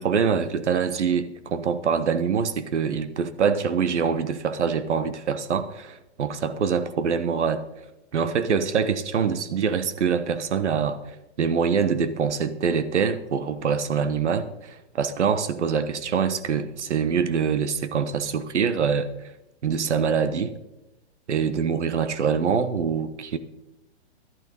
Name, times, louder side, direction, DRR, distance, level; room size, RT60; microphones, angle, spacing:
voice 1, 0.0-7.6 8.1-11.0 11.4-19.1 19.6-20.5 21.3-23.4, right 6 dB, 85° right, 1.2 m, -24 dB
11.5 x 11.0 x 5.3 m
hypercardioid pair, 145°, 34 cm